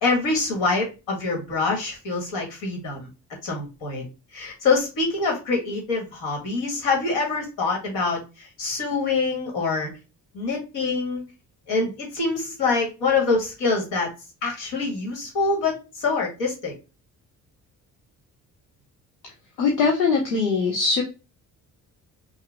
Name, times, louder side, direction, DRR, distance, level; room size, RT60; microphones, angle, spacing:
voice 1, 0.0-3.1 3.4-4.1 4.3-9.9 10.3-11.2 11.7-14.1 14.4-16.7, left 4 dB, 60° left, 0 dB, 1.7 m, -25 dB
voice 2, 19.6-21.0, left 4 dB, 80° left, -1 dB, 0.8 m, -21 dB
5.5 x 2.2 x 3.3 m, 0.29 s
figure-of-eight pair, 40°, 49 cm